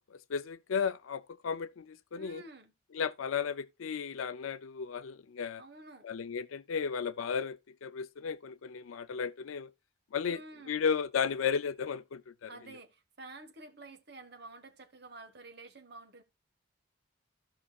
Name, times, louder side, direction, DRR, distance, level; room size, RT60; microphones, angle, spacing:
voice 1, 0.1-2.4 2.9-5.6 6.0-9.7 10.1-10.4 10.7-12.5, left 6 dB, 85° left, 0.4 m, -34 dB
voice 2, 2.1-2.7 5.6-6.1 10.3-10.8 12.5-16.2, right 2 dB, 55° right, 1.5 m, -50 dB
15.5 x 5.5 x 2.4 m
head